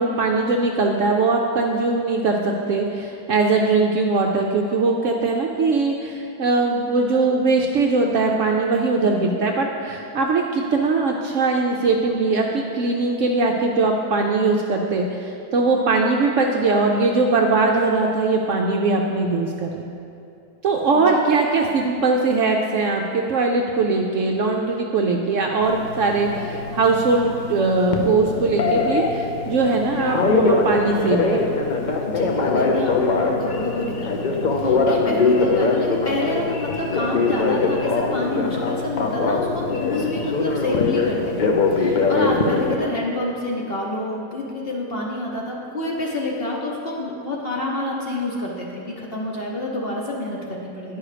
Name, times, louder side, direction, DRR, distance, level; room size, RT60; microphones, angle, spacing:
voice 1, 0.0-19.9 20.6-31.7, right 3 dB, 65° right, 1 dB, 0.8 m, -21 dB
Telephone, 25.6-42.8, left 3 dB, 90° left, 0.4 m, -22 dB
voice 2, 32.1-51.0, left 2 dB, 45° left, -2 dB, 0.9 m, -28 dB
9.7 x 5.4 x 4.9 m, 2.7 s
omnidirectional pair, 1.7 m